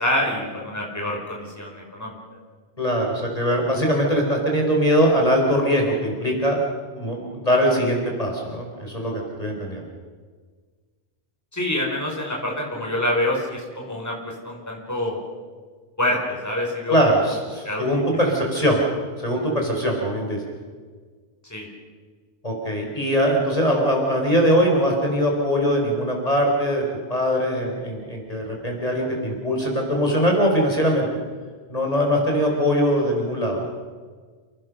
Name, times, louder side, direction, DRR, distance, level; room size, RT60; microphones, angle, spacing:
voice 1, 0.0-2.2 11.5-15.2 16.0-16.9 17.6-17.8 21.5-21.7, left 1 dB, 15° left, -2 dB, 5.2 m, -26 dB
voice 2, 2.8-6.6 6.9-9.8 16.9-18.8 19.2-20.4 22.4-26.8 27.1-31.1 31.7-33.6, equal, 35° left, 0 dB, 5.1 m, -21 dB
30.0 x 19.0 x 6.6 m, 1.5 s
omnidirectional pair, 1.1 m